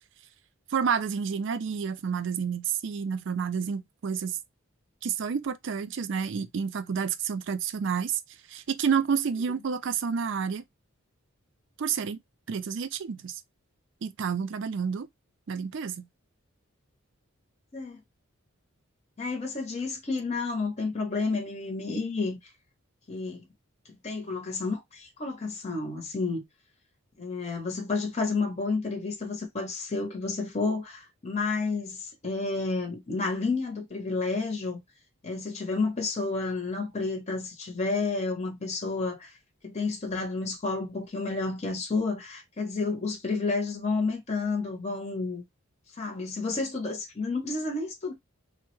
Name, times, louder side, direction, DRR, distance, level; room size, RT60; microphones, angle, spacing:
voice 1, 0.7-4.4 5.0-8.2 8.5-10.6 11.8-12.2 12.5-13.4 14.0-15.1 15.5-16.1, right 6 dB, 55° right, 0.4 m, -29 dB
voice 2, 19.2-22.4 23.1-23.4 24.0-26.4 27.2-34.8 35.2-39.4 39.6-45.4 46.0-48.1, left 3 dB, 30° left, 0.7 m, -30 dB
3.3 x 2.1 x 2.9 m
head